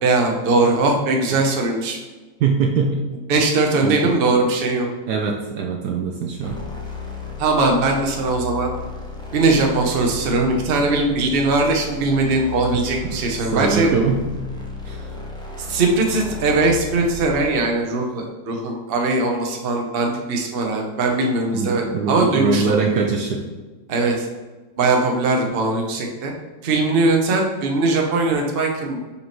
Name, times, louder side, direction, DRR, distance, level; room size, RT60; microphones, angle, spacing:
voice 1, 0.0-2.0 3.3-4.9 7.4-8.7 9.3-13.9 15.7-22.7 23.9-24.3 24.8-26.3 26.6-29.0, right 3 dB, 45° right, 1 dB, 0.8 m, -20 dB
voice 2, 2.4-3.0 3.8-4.1 5.1-6.6 12.8-13.2 13.5-14.2 14.9-15.1 21.5-23.4, right 5 dB, 70° right, 2 dB, 1.1 m, -22 dB
sound 1, 6.4-17.5, left 4 dB, 5° left, 0.5 m, -34 dB
6.8 x 4.9 x 3.1 m, 1.3 s
omnidirectional pair, 2.0 m